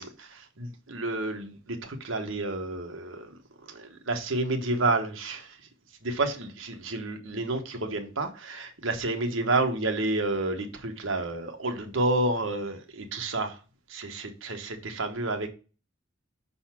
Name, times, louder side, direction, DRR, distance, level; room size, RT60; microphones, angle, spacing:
voice 1, 0.0-3.4 3.7-5.6 6.0-13.6 13.9-15.5, right 2 dB, 70° right, 1.2 m, -30 dB
5.8 x 4.1 x 5.8 m
head